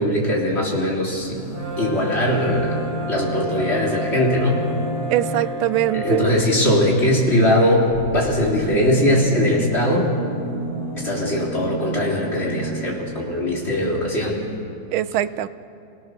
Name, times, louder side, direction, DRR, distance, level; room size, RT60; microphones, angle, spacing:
voice 1, 0.0-1.4 1.8-2.8 3.1-4.6 5.9-10.1 11.0-14.4, left 1 dB, 30° left, -3 dB, 4.0 m, -20 dB
sound 1, 1.2-6.1 7.7-13.2 14.2-14.3 14.5-14.6, right 1 dB, 55° left, 6.8 m, -32 dB
Brass instrument, 1.5-6.4, right 1 dB, 60° right, 5.2 m, -31 dB
voice 2, 5.1-6.3 14.9-15.5, right 13 dB, 90° right, 14 dB, 1.5 m, -22 dB
29.5 x 17.5 x 6.6 m, 2.7 s
omnidirectional pair, 2.2 m